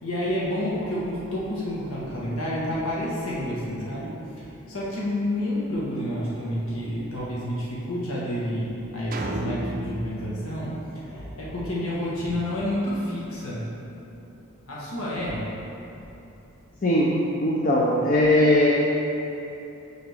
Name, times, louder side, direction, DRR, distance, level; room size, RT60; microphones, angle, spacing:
voice 1, 0.0-10.7 11.1-13.7 14.7-15.5, left 1 dB, 75° left, -7 dB, 1.4 m, -29 dB
sound 1, 9.1-11.6, right 1 dB, 40° right, 0.5 m, -33 dB
voice 2, 16.8-17.1 17.4-18.7, left 1 dB, 40° left, -4 dB, 0.6 m, -19 dB
6.9 x 6.6 x 3.4 m, 3.0 s
head